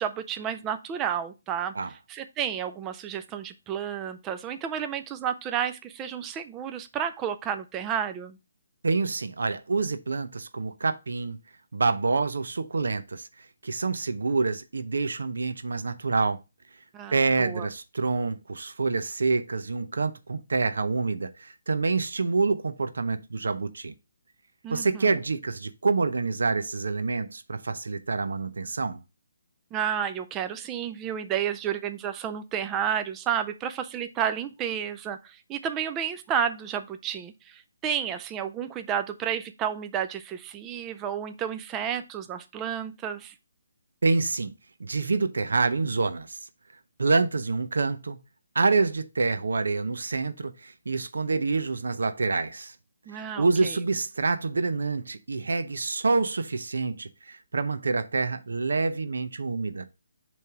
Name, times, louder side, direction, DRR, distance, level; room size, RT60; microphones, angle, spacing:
voice 1, 0.0-1.7 2.1-8.4 16.9-17.7 24.6-25.2 29.7-43.3 53.1-53.8, right 8 dB, 10° right, 0.3 m, -31 dB
voice 2, 8.8-11.4 11.7-13.3 13.6-16.4 17.1-23.9 24.7-29.0 44.0-44.5 44.8-46.4 47.0-48.2 48.5-52.7 53.4-59.9, right 3 dB, 85° right, 0.6 m, -27 dB
6.8 x 3.2 x 4.7 m
hypercardioid pair, 170°, 0 cm